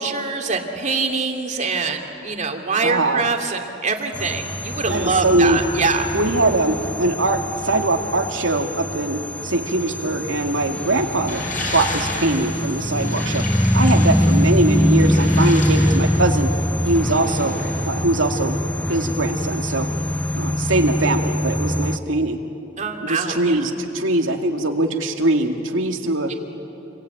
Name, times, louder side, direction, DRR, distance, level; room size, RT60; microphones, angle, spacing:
voice 1, 0.0-6.1 15.8-15.9 17.2-17.6 22.8-23.7 26.3-26.4, right 4 dB, 40° right, 4 dB, 2.4 m, -24 dB
voice 2, 2.8-3.3 4.9-5.6 6.1-11.4 11.7-13.5 13.7-16.5 16.8-17.6 17.9-18.6 18.9-19.9 20.3-22.4 23.0-26.3, right 2 dB, 85° right, 4 dB, 2.3 m, -21 dB
sound 1, 4.1-22.0, equal, 5° left, 0.6 m, -23 dB
sound 2, 11.3-17.9, left 2 dB, 45° left, 6.3 m, -33 dB
28.5 x 22.5 x 9.1 m, 2.8 s
head